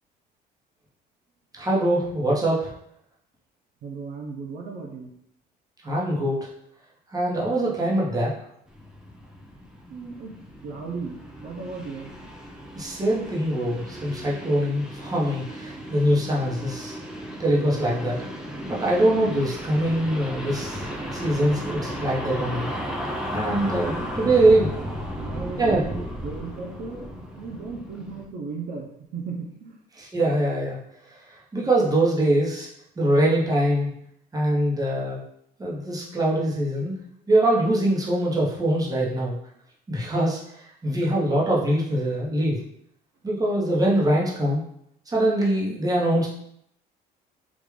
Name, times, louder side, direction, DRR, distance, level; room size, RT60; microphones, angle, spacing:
voice 1, 1.6-2.7 5.8-6.5 7.1-8.3 12.7-17.0 17.4-18.2 18.6-20.9 21.1-22.7 23.3-24.7 25.6-25.8 30.0-30.8 31.3-32.7 33.0-33.9 34.3-35.2 35.6-37.0 37.3-39.3 39.9-42.6 43.2-44.6 45.1-46.3, right 1 dB, 20° right, -4 dB, 1.0 m, -23 dB
voice 2, 3.8-5.1 9.9-10.4 10.6-12.1 23.6-24.6 25.2-29.8, right 4 dB, 65° right, 0 dB, 0.6 m, -36 dB
sound 1, 8.7-28.2, equal, 5° right, 0.5 m, -35 dB
3.5 x 2.4 x 3.2 m, 0.73 s
cardioid pair, 110°, 17 cm